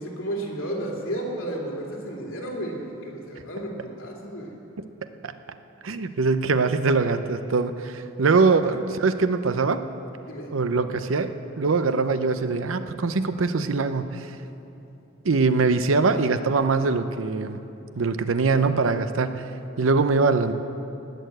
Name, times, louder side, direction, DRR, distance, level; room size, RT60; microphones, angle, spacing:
voice 1, 0.0-4.5 10.3-10.5, right 1 dB, 90° left, -2 dB, 2.9 m, -32 dB
voice 2, 5.8-9.9 10.5-14.3 15.2-17.6 18.0-19.5 19.8-20.5, right 4 dB, 80° right, 10 dB, 0.7 m, -23 dB
19.0 x 6.8 x 7.8 m, 2.9 s
head